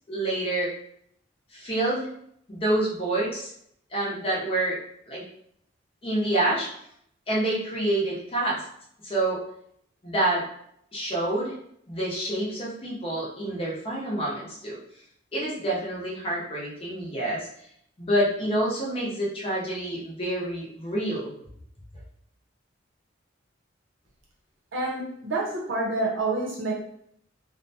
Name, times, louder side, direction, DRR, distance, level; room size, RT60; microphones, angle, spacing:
voice 1, 0.1-0.7 1.5-2.1 2.5-3.5 3.9-4.8 5.1-5.2 6.0-6.7 7.3-8.6 9.0-9.4 10.0-10.4 10.9-11.5 11.9-14.8 15.3-17.5 18.0-21.3, right 1 dB, 30° left, -5 dB, 0.7 m, -27 dB
voice 2, 24.7-26.7, right 2 dB, 75° right, -3 dB, 0.7 m, -28 dB
2.5 x 2.1 x 2.7 m, 0.69 s
head